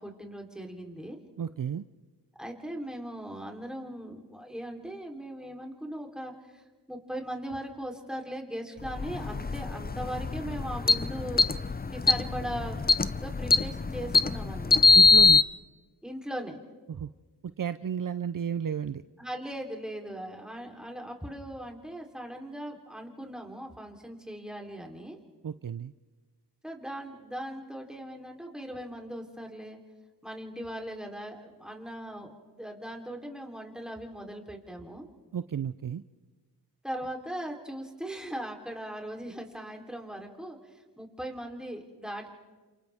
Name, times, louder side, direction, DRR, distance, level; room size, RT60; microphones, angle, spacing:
voice 1, 0.0-1.2 2.4-6.6 6.9-12.8 13.1-15.0 16.0-16.6 19.2-25.2 26.6-29.8 30.2-35.1 36.8-42.3, right 1 dB, ahead, 1 dB, 3.5 m, -39 dB
voice 2, 1.4-1.9 14.9-15.4 16.9-17.1 17.6-19.0 25.4-25.9 35.3-36.0, right 8 dB, 55° right, 13 dB, 0.6 m, -32 dB
sound 1, 8.8-15.4, left 3 dB, 25° left, 0.6 m, -23 dB
30.0 x 27.5 x 3.6 m, 1.3 s
cardioid pair, 45°, 40 cm